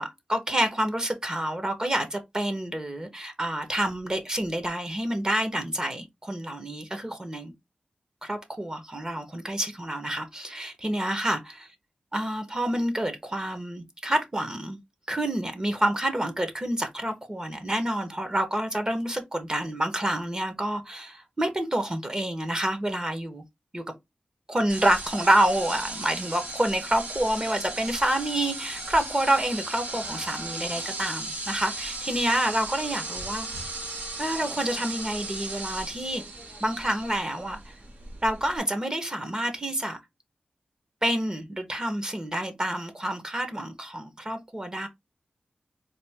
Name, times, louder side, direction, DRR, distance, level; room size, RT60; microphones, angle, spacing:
voice 1, 0.0-7.5 8.2-11.7 12.1-14.8 15.1-23.4 23.7-23.8 24.5-33.7 34.2-36.2 36.6-37.7 38.2-40.0 41.0-44.9, right 1 dB, 25° right, 1.0 m, -28 dB
sound 1, 24.7-38.6, right 2 dB, 70° right, 1.6 m, -36 dB
4.2 x 2.5 x 3.4 m
wide cardioid pair, 80°, 3 cm